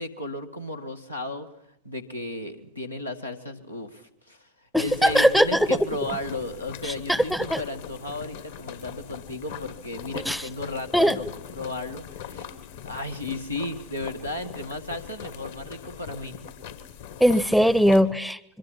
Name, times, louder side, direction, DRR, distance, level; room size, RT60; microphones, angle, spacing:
voice 1, 0.0-1.5 1.8-4.5 4.8-11.3 11.5-12.5 12.8-16.3, left 2 dB, 90° left, 3 dB, 1.9 m, -34 dB
voice 2, 4.7-5.7 6.8-7.6 10.3-10.4 10.9-11.2 17.2-18.4, equal, ahead, 19 dB, 0.7 m, -20 dB
sound 1, 4.9-18.0, left 8 dB, 55° left, 1.7 m, -41 dB
25.0 x 23.0 x 5.7 m, 0.81 s
figure-of-eight pair, 90°, 0 cm